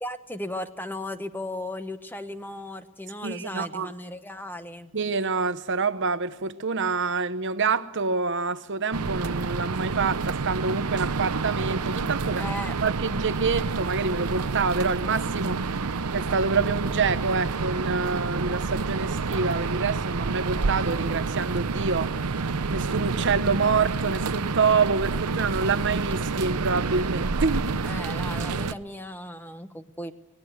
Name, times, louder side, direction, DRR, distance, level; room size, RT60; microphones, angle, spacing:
voice 1, 0.0-4.9 12.2-12.8 27.8-30.1, left 1 dB, 10° left, 1.1 m, -36 dB
voice 2, 3.2-3.9 4.9-12.4 12.8-22.1 22.7-27.8, right 4 dB, 55° right, 1.0 m, -27 dB
sound 1, 8.9-28.7, right 4 dB, 85° right, 0.8 m, -28 dB
24.0 x 19.0 x 8.1 m
head